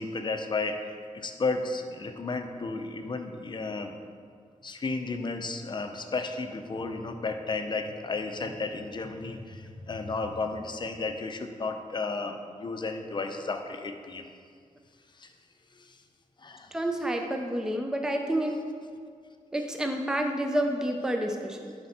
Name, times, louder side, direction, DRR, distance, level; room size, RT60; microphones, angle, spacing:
voice 1, 0.0-3.9 4.6-14.2 15.2-15.3 15.7-16.0 16.4-16.7, left 3 dB, 35° left, 6 dB, 0.6 m, -33 dB
voice 2, 16.7-18.6 19.5-21.7, right 1 dB, 5° right, 3 dB, 0.6 m, -29 dB
10.5 x 4.4 x 4.3 m, 2.1 s
wide cardioid pair, 95°, 13 cm